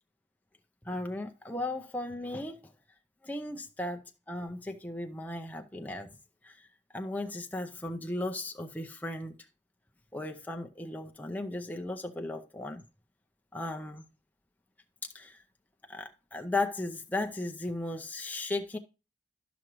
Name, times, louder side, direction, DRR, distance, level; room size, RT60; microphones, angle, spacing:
voice 1, 0.9-2.6 3.2-6.1 6.4-6.5 6.9-9.3 10.1-12.8 13.5-14.0 15.1-15.4 15.9-18.8, left 2 dB, 10° left, 0.5 m, -36 dB
12.0 x 6.0 x 3.0 m
head